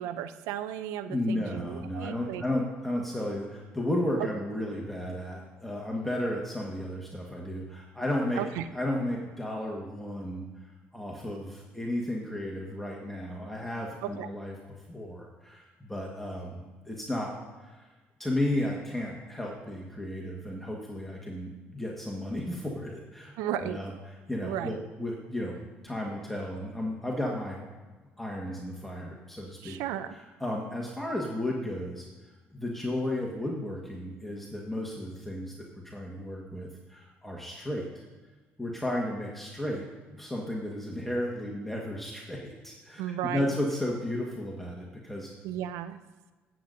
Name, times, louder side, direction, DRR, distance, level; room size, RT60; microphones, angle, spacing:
voice 1, 0.0-2.4 8.4-8.7 14.0-14.3 23.4-23.8 24.4-24.8 29.6-30.2 43.0-43.5 45.4-46.0, right 11 dB, 85° right, 12 dB, 0.5 m, -34 dB
voice 2, 1.1-8.4 8.7-14.5 14.9-17.3 17.6-17.9 18.2-23.9 24.3-25.6 25.8-27.6 28.2-29.8 30.4-32.1 32.5-38.0 38.6-45.3, left 1 dB, 5° left, -2 dB, 1.6 m, -33 dB
16.0 x 7.9 x 2.7 m, 1.3 s
supercardioid pair, 70°, 5 cm